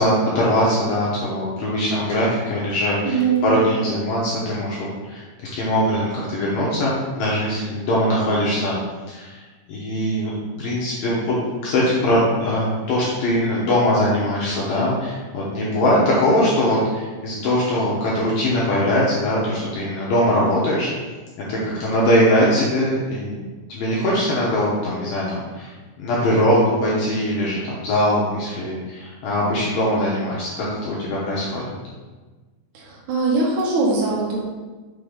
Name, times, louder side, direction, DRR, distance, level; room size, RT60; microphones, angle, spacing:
voice 1, 0.0-4.8 5.1-5.2 5.5-8.8 9.1-9.4 9.7-10.3 10.6-11.4 11.6-20.9 21.4-23.4 23.7-25.7 26.0-31.6, equal, 75° left, -6 dB, 2.1 m, -21 dB
voice 2, 3.0-3.5 32.7-34.4, right 4 dB, 70° right, -5 dB, 1.8 m, -21 dB
6.5 x 3.8 x 4.9 m, 1.3 s
omnidirectional pair, 5.3 m